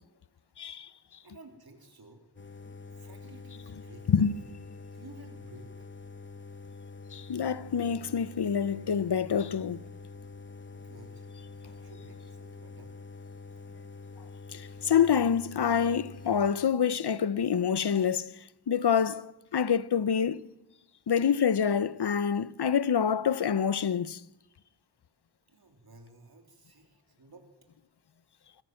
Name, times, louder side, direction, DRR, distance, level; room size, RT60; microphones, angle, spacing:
voice 1, 0.6-0.9 4.1-4.3 7.1-9.8 14.5-18.4 18.7-19.3 19.5-20.4 21.1-24.2, left 7 dB, 75° left, 0.8 m, -26 dB
voice 2, 1.2-2.2 3.0-4.2 4.9-5.7 10.7-11.3 11.5-12.9 25.5-27.5, right 2 dB, 65° right, 3.6 m, -54 dB
sound 1, 2.4-16.5, left 4 dB, 30° left, 1.1 m, -46 dB
23.0 x 16.5 x 7.8 m
wide cardioid pair, 85°, 40 cm